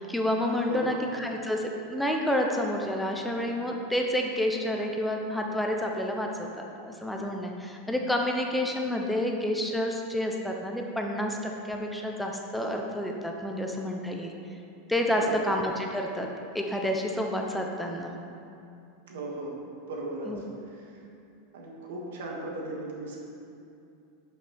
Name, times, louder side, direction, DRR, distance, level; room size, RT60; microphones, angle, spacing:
voice 1, 0.0-14.3 14.9-18.1 20.3-20.4, left 1 dB, ahead, 1 dB, 0.4 m, -29 dB
voice 2, 0.7-1.0 15.1-15.4 19.1-19.6 19.9-20.3 20.7-21.0 21.5-23.2, right 1 dB, 85° right, -2 dB, 1.7 m, -36 dB
11.5 x 5.5 x 3.3 m, 2.6 s
supercardioid pair, 180°, 0 cm